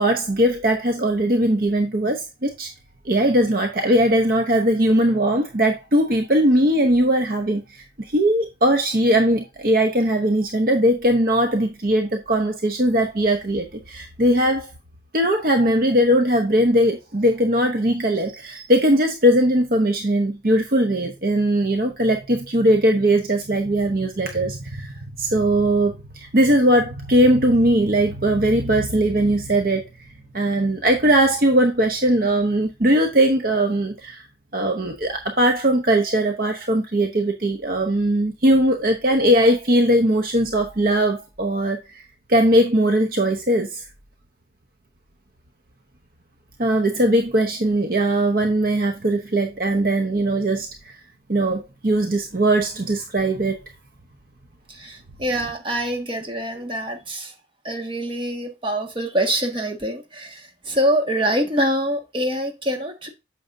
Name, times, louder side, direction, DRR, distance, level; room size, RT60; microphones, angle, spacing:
voice 1, 0.0-2.7 3.0-14.7 15.1-24.9 25.2-29.9 30.3-34.2 34.5-42.0 42.3-43.8 46.6-51.0 51.3-53.6, right 1 dB, 50° right, 0.9 m, -20 dB
voice 2, 54.7-57.3 57.6-63.1, right 1 dB, 30° right, 1.7 m, -25 dB
9.0 x 6.8 x 2.7 m
head